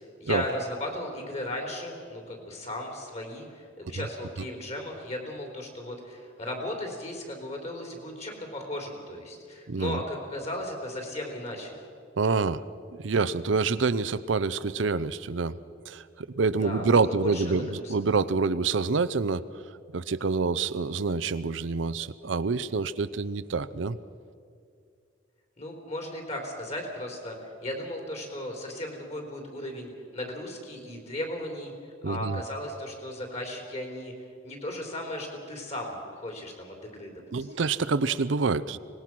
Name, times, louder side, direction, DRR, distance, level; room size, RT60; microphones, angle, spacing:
voice 1, 0.2-11.8 16.6-17.9 25.6-31.7 32.0-34.1 34.4-37.5, left 1 dB, 35° left, 2 dB, 3.8 m, -36 dB
voice 2, 9.7-10.0 12.2-12.6 13.0-15.6 15.9-19.4 19.9-24.0 32.0-32.4 37.3-38.8, right 4 dB, 85° right, 14 dB, 0.6 m, -27 dB
24.5 x 19.5 x 6.1 m, 2.3 s
head